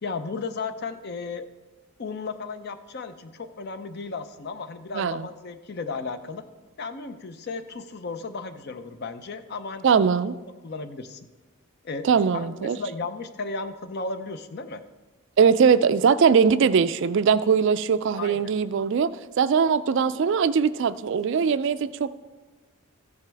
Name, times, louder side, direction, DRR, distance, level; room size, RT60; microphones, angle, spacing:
voice 1, 0.0-1.5 2.0-6.4 6.8-10.0 10.6-11.2 11.8-12.1 12.3-14.8 18.2-18.5, left 4 dB, 45° left, 10 dB, 0.5 m, -34 dB
voice 2, 4.9-5.3 9.8-10.3 12.0-12.8 15.4-19.1 19.4-22.1, right 6 dB, 55° right, 14 dB, 0.3 m, -21 dB
14.0 x 9.1 x 3.4 m, 1.3 s
head